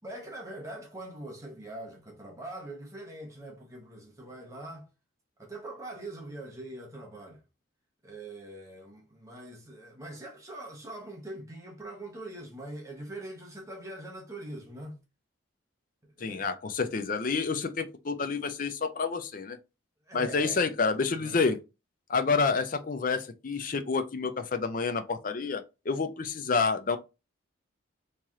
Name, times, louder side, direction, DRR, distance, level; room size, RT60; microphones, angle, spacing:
voice 1, 0.0-4.9 5.4-7.4 8.0-15.0 16.2-16.5 20.1-20.7 21.1-21.4, right 1 dB, 15° right, 0.8 m, -43 dB
voice 2, 16.2-19.6 20.1-21.6 22.1-27.0, left 4 dB, 40° left, 0.5 m, -29 dB
3.1 x 2.9 x 3.6 m
head